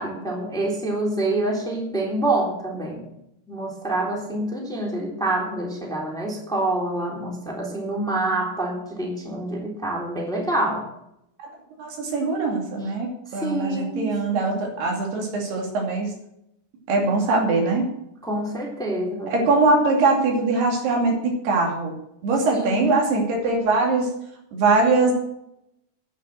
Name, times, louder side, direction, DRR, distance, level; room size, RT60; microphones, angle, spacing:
voice 1, 0.0-3.0 3.5-10.9 13.4-14.6 18.2-19.5 22.6-23.0, right 2 dB, ahead, -2 dB, 2.6 m, -27 dB
voice 2, 11.8-16.1 16.9-17.9 19.3-22.0 22.2-24.1 24.5-25.1, right 3 dB, 75° right, 1 dB, 4.5 m, -22 dB
10.5 x 9.3 x 7.7 m, 0.80 s
omnidirectional pair, 4.7 m